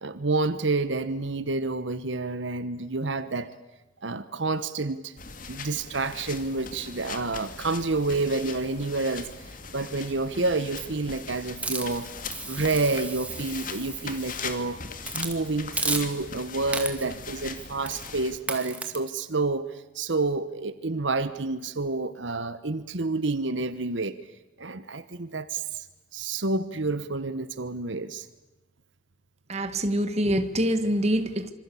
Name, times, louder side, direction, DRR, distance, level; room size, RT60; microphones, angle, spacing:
voice 1, 0.0-3.5 4.0-5.1 5.5-12.1 12.5-14.8 15.1-24.1 24.6-25.9 26.1-28.3, right 3 dB, 70° right, 1.2 m, -29 dB
sound 1, 5.2-18.4, left 4 dB, 45° left, 2.5 m, -40 dB
Hiss, 11.6-14.5 15.0-15.4 15.8-16.4 16.7-17.2 17.9-18.1 18.5-19.0, right 3 dB, 5° right, 2.3 m, -34 dB
voice 2, 29.5-31.5, equal, 35° right, 1.8 m, -25 dB
26.5 x 25.5 x 8.5 m
head